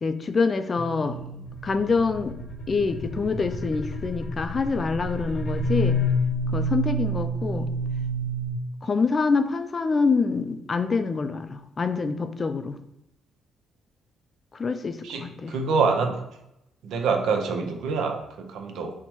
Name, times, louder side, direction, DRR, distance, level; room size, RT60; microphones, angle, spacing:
voice 1, 0.0-1.2 1.6-2.4 2.7-6.0 6.5-7.7 8.8-12.8 14.5-15.6, left 4 dB, 35° left, 10 dB, 0.3 m, -26 dB
sound 1, 0.8-8.6, equal, 60° left, 0.7 m, -29 dB
voice 2, 15.0-16.2 16.8-18.9, right 4 dB, 80° right, 4 dB, 0.6 m, -26 dB
4.1 x 2.1 x 4.5 m, 0.84 s
cardioid pair, 90°, 0 cm